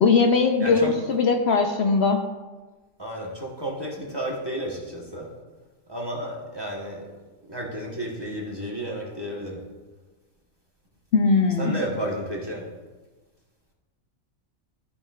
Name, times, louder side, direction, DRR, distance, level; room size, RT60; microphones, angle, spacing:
voice 1, 0.0-2.2 11.1-11.8, left 4 dB, 60° left, 4 dB, 0.8 m, -20 dB
voice 2, 0.6-0.9 3.0-5.3 5.9-7.1 7.5-9.6 11.6-12.7, right 1 dB, 20° right, -2 dB, 1.1 m, -32 dB
13.5 x 5.6 x 2.3 m, 1.3 s
omnidirectional pair, 1.3 m